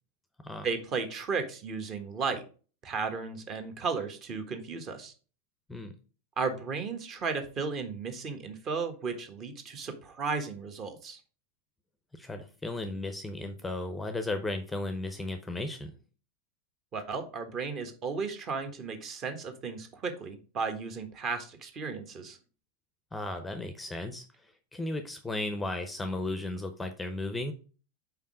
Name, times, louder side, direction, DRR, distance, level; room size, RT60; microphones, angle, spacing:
voice 1, 0.6-2.4 2.8-5.1 6.4-11.2 16.9-22.4, right 5 dB, 30° right, 7 dB, 1.3 m, -34 dB
voice 2, 12.1-15.9 23.1-24.2 24.7-27.5, left 2 dB, 10° left, 7 dB, 0.7 m, -35 dB
5.6 x 4.6 x 5.0 m, 0.37 s
figure-of-eight pair, 90°, 0 cm